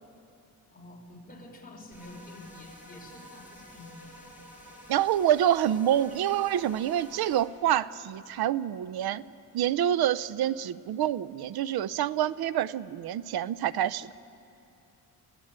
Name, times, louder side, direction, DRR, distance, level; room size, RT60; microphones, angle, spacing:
voice 1, 0.7-4.2, left 2 dB, 25° left, -1 dB, 4.9 m, -48 dB
sound 1, 1.9-7.4, equal, 5° right, 5.9 m, -50 dB
voice 2, 4.9-9.2 9.5-14.1, right 11 dB, 85° right, 17 dB, 0.6 m, -27 dB
29.0 x 15.5 x 8.8 m, 2.6 s
cardioid pair, 130°, 36 cm